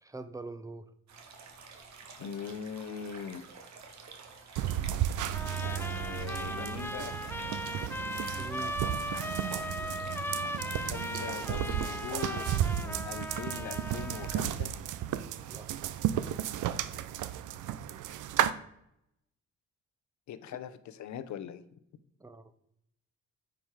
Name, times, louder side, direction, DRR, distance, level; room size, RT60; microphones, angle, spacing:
voice 1, 0.0-0.9 8.4-8.8 15.5-15.7 22.2-22.5, right 3 dB, 10° right, 11 dB, 0.8 m, -43 dB
sound 1, 1.1-12.5, right 5 dB, 65° right, 1.8 m, -50 dB
voice 2, 2.2-3.5 5.6-7.2 10.8-14.7 20.3-21.6, left 8 dB, 70° left, 12 dB, 0.9 m, -41 dB
sound 2, 4.6-18.5, right 11 dB, 80° right, 0.7 m, -33 dB
Trumpet, 5.3-14.4, left 1 dB, 5° left, 0.4 m, -38 dB
9.2 x 5.1 x 4.8 m, 0.76 s
cardioid pair, 90°, 30 cm